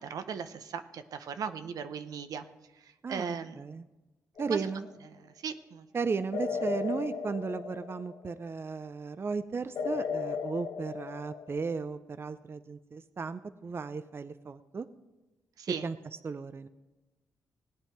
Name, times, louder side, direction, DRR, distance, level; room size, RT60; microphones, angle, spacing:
voice 1, 0.0-2.4 2.7-3.6 4.5-4.7 5.2-5.9 15.6-15.9, right 7 dB, 70° right, 10 dB, 0.7 m, -38 dB
voice 2, 3.0-3.9 4.4-4.9 5.9-14.9 15.8-16.0 16.2-16.7, right 4 dB, 40° right, 13 dB, 0.6 m, -35 dB
sound 1, 4.4-4.9 6.3-8.4 9.7-11.8, left 6 dB, 65° left, 0.9 m, -36 dB
17.5 x 9.0 x 4.5 m, 1.1 s
supercardioid pair, 55°, 6 cm